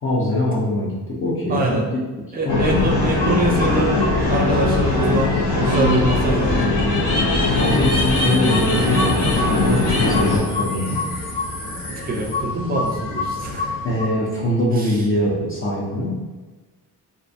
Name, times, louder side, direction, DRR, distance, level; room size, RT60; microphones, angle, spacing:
voice 1, 0.0-2.0 2.5-3.1 7.4-11.0 13.8-16.2, left 1 dB, 35° left, -5 dB, 0.5 m, -23 dB
voice 2, 1.5-1.9 2.3-4.0 4.3-5.3 5.6-6.8 12.0-13.8 14.8-15.0, right 2 dB, 25° right, -1 dB, 0.5 m, -24 dB
sound 1, 2.5-10.4, left 2 dB, 60° left, 0.8 m, -20 dB
sound 2, 3.2-14.1, left 2 dB, 85° left, 0.9 m, -28 dB
2.4 x 2.1 x 2.6 m, 1.2 s
cardioid pair, 120°, 40 cm